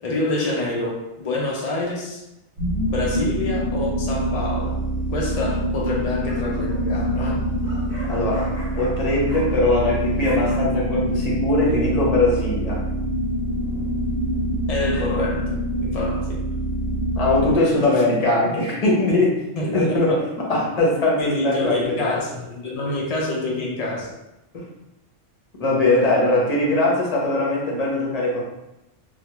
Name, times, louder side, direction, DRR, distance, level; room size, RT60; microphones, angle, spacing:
voice 1, 0.0-2.2 2.8-4.8 5.1-7.4 14.7-16.4 17.8-18.0 19.6-20.2 21.2-24.1, left 2 dB, 85° left, -3 dB, 0.3 m, -27 dB
sound 1, 2.6-17.6, right 1 dB, 80° right, 1.1 m, -25 dB
sound 2, 4.6-5.0 5.9-9.8 10.1-10.5, left 1 dB, 10° left, 0.9 m, -40 dB
voice 2, 8.1-8.5 8.8-12.8 17.2-19.4 19.7-20.2 20.5-22.1 24.5-24.6 25.6-28.4, left 2 dB, 40° left, -4 dB, 0.6 m, -21 dB
2.2 x 2.2 x 2.9 m, 0.92 s
omnidirectional pair, 1.2 m